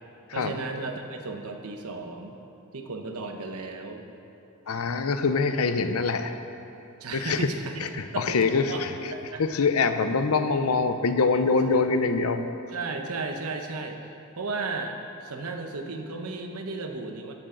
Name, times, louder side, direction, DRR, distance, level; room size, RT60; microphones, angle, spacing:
voice 1, 0.3-2.4 2.7-4.0 7.0-8.8 9.1-9.4 12.7-14.0 14.4-17.3, right 3 dB, 85° right, 4 dB, 1.0 m, -34 dB
voice 2, 4.7-6.4 7.1-7.5 7.9-8.9 9.4-12.5, left 4 dB, 75° left, 9 dB, 0.7 m, -24 dB
15.5 x 8.8 x 3.9 m, 2.8 s
head